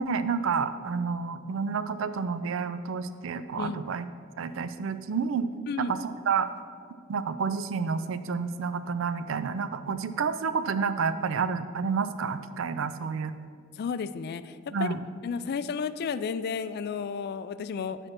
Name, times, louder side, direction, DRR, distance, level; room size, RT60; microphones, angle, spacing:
voice 1, 0.0-4.1 4.4-5.5 5.8-6.5 7.1-13.4 14.7-15.0, right 5 dB, 75° right, 12 dB, 0.4 m, -29 dB
voice 2, 5.7-6.0 9.9-10.0 13.8-15.0 15.2-18.1, left 6 dB, 50° left, 14 dB, 0.3 m, -33 dB
9.0 x 4.5 x 6.0 m, 2.2 s
head